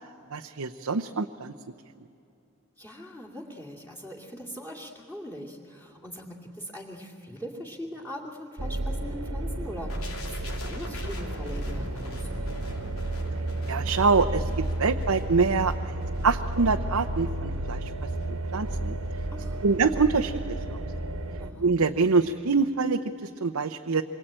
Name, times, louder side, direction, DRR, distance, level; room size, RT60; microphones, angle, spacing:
voice 1, 0.3-1.5 13.7-15.9 16.2-17.9 18.5-19.0 19.6-20.8 21.6-24.0, right 4 dB, 90° right, 5 dB, 0.8 m, -25 dB
voice 2, 2.8-12.6 19.3-19.6 21.4-21.7, equal, 10° left, 0 dB, 2.5 m, -41 dB
sound 1, 8.6-21.5, right 1 dB, 65° right, 1.4 m, -32 dB
sound 2, 9.9-19.8 20.1-20.3, left 2 dB, 80° left, 3.2 m, -46 dB
26.5 x 22.5 x 8.9 m, 2.7 s
head